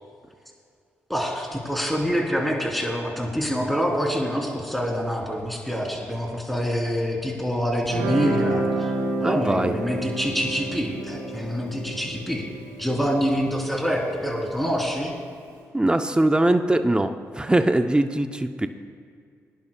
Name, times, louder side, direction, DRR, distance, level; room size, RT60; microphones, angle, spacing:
voice 1, 1.1-8.9 9.2-12.5 12.8-15.1, equal, ahead, -1 dB, 3.3 m, -26 dB
Guitar, 7.8-15.0, right 2 dB, 90° right, 3.0 m, -30 dB
voice 2, 9.2-9.7 15.7-18.7, right 1 dB, 15° right, 8 dB, 0.7 m, -21 dB
21.5 x 10.5 x 2.3 m, 2.2 s
supercardioid pair, 45°, 7 cm